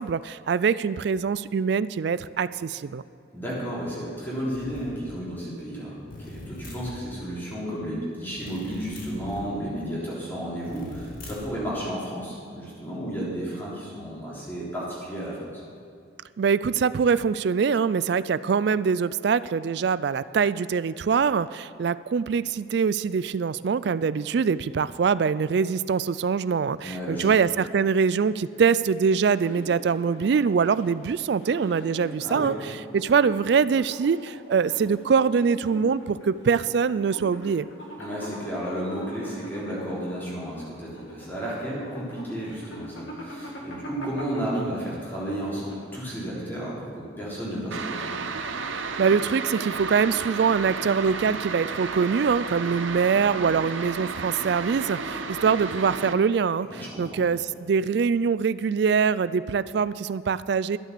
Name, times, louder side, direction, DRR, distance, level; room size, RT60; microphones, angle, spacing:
voice 1, 0.0-3.0 16.4-32.5 32.9-37.7 49.0-60.8, right 6 dB, 55° right, 16 dB, 0.3 m, -23 dB
voice 2, 3.3-15.5 26.8-27.3 32.2-32.6 38.0-48.1 56.7-57.2, equal, 10° left, -8 dB, 3.5 m, -33 dB
sound 1, 4.5-5.0 6.1-7.0 8.4-9.5 10.6-11.6, left 1 dB, 45° left, 1.8 m, -41 dB
sound 2, 29.3-46.1, equal, 70° left, 2.1 m, -42 dB
sound 3, 47.7-56.1, right 4 dB, 75° right, 0.8 m, -33 dB
11.5 x 9.1 x 6.7 m, 2.4 s
head